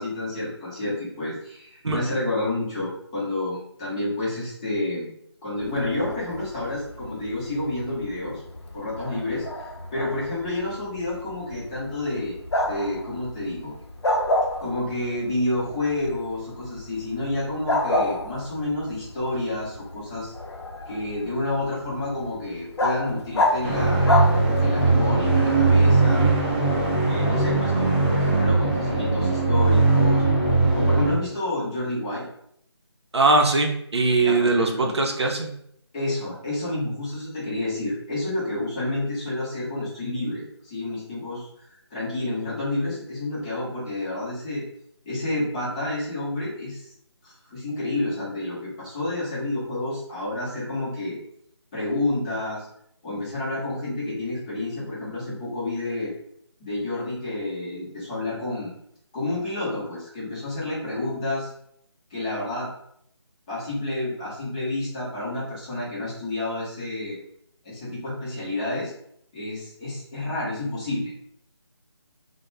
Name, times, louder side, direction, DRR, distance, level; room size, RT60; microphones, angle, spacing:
voice 1, 0.0-5.1 5.4-8.4 8.7-9.5 9.9-12.4 12.6-13.7 14.6-20.3 20.9-26.3 27.1-32.3 34.2-34.9 35.9-44.6 45.0-46.9 47.2-51.2 51.7-52.7 53.0-56.1 56.6-58.7 59.1-61.5 62.1-62.7 63.5-67.2 67.6-68.9 69.3-71.1, left 2 dB, 15° left, -8 dB, 0.7 m, -29 dB
Bark, 5.6-25.0, left 1 dB, 70° left, 0.6 m, -30 dB
sound 1, 23.6-31.1, right 3 dB, 25° right, 0.6 m, -20 dB
voice 2, 33.1-35.5, right 3 dB, 70° right, 2 dB, 0.5 m, -21 dB
2.2 x 2.0 x 3.2 m, 0.70 s
figure-of-eight pair, 155°, 14 cm